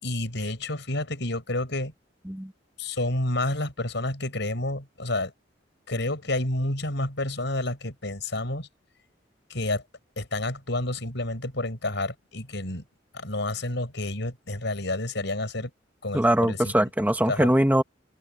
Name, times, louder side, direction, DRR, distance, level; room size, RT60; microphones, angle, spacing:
voice 1, 0.0-1.9 2.8-5.3 5.9-8.7 9.5-9.8 10.2-12.8 13.1-15.7 16.0-16.6 17.3-17.5, left 2 dB, 65° left, 7.7 m, -29 dB
voice 2, 16.1-17.8, right 1 dB, 10° right, 1.7 m, -22 dB
head